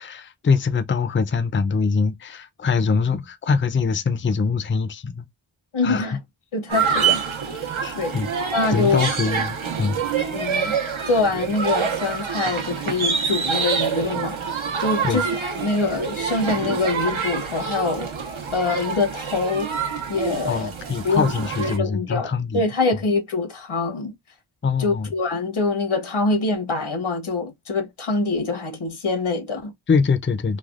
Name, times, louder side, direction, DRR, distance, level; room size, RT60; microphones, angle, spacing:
voice 1, 0.0-5.3 5.8-6.1 7.8-8.3 8.7-10.2 13.8-13.9 15.0-15.2 20.5-22.6 24.6-25.1 29.9-30.6, left 5 dB, 25° left, 0.4 m, -23 dB
voice 2, 5.7-6.2 6.5-7.2 7.9-8.2 8.5-9.0 10.3-10.8 11.1-14.4 14.8-18.1 18.5-19.7 20.1-20.7 21.0-21.3 21.6-24.1 24.8-29.7, left 3 dB, 80° left, 1.0 m, -24 dB
sound 1, 6.7-21.8, right 6 dB, 75° right, 1.0 m, -26 dB
3.3 x 2.2 x 2.3 m
wide cardioid pair, 80°, 48 cm